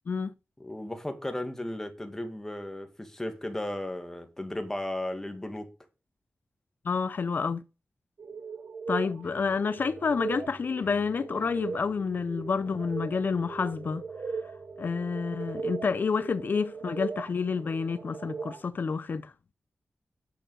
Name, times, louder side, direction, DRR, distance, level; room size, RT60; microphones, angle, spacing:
voice 1, 0.6-5.7, left 1 dB, 10° left, 1.9 m, -35 dB
voice 2, 6.8-7.6 8.9-14.0 14.3-14.4 14.8-19.3, left 5 dB, 55° left, 0.5 m, -29 dB
sound 1, 8.2-18.7, right 5 dB, 60° right, 0.9 m, -39 dB
sound 2, 9.2-16.7, equal, 30° right, 4.2 m, -55 dB
10.0 x 6.7 x 6.4 m
wide cardioid pair, 140°, 4 cm